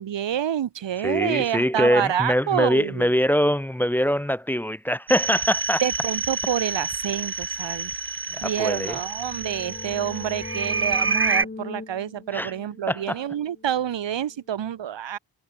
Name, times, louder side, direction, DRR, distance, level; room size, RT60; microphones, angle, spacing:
voice 1, 0.0-3.1 5.8-7.9 8.4-15.2, right 10 dB, 85° right, 1.7 m, -28 dB
voice 2, 1.0-5.8 8.3-9.0 12.3-12.5 12.9-13.2, equal, 5° left, 0.6 m, -23 dB
sound 1, 5.1-11.5, right 4 dB, 30° right, 3.3 m, -28 dB
sound 2, 8.9-14.4, left 3 dB, 25° left, 5.7 m, -40 dB
wide cardioid pair, 160°, 43 cm